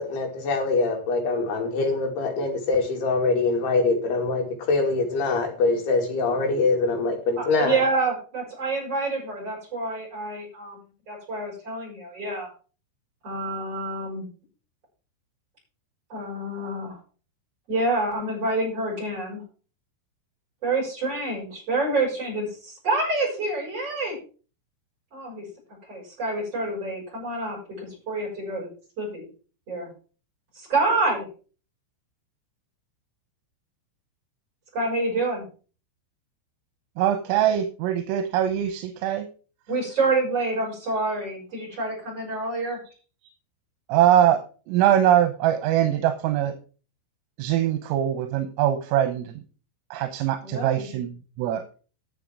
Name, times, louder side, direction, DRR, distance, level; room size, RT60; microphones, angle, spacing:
voice 1, 0.0-7.8, left 3 dB, 55° left, 3 dB, 4.1 m, -24 dB
voice 2, 7.4-10.8 11.1-12.5 13.2-14.2 16.1-17.0 17.7-19.4 20.6-24.2 25.1-25.4 25.9-28.7 29.0-29.3 29.7-29.9 30.5-31.3 34.7-35.4 39.7-42.8 50.4-50.9, right 2 dB, 30° right, -3 dB, 8.4 m, -27 dB
voice 3, 37.0-39.3 43.9-44.4 44.7-46.5 47.4-49.4 49.9-51.8, right 11 dB, 85° right, 8 dB, 3.7 m, -22 dB
11.5 x 7.2 x 6.3 m, 0.38 s
omnidirectional pair, 5.8 m